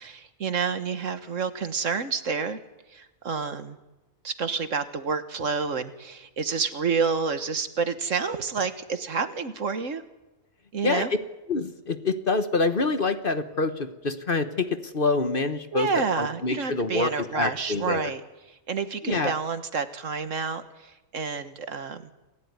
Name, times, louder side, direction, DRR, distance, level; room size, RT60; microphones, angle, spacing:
voice 1, 0.0-2.6 2.9-3.8 4.2-10.0 10.7-11.1 15.7-18.2 18.7-22.1, right 5 dB, 65° right, 10 dB, 1.7 m, -29 dB
voice 2, 11.5-15.9 16.2-18.1 19.0-19.3, left 3 dB, 40° left, 10 dB, 1.4 m, -26 dB
28.0 x 16.5 x 9.6 m, 1.0 s
omnidirectional pair, 1.4 m